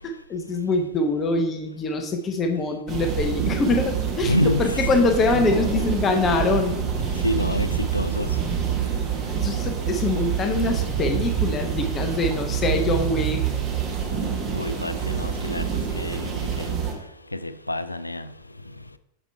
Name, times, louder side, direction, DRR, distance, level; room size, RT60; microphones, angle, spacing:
voice 1, 0.0-6.8 9.3-13.4, left 3 dB, 25° left, 0.8 m, -24 dB
sound 1, 2.9-16.9, right 8 dB, 30° right, 1.4 m, -26 dB
voice 2, 4.2-4.6 7.2-8.3 14.5-15.6 16.0-16.7 17.3-18.3, left 1 dB, 85° left, 0.4 m, -27 dB
6.1 x 5.2 x 4.4 m
figure-of-eight pair, 90°, 0 cm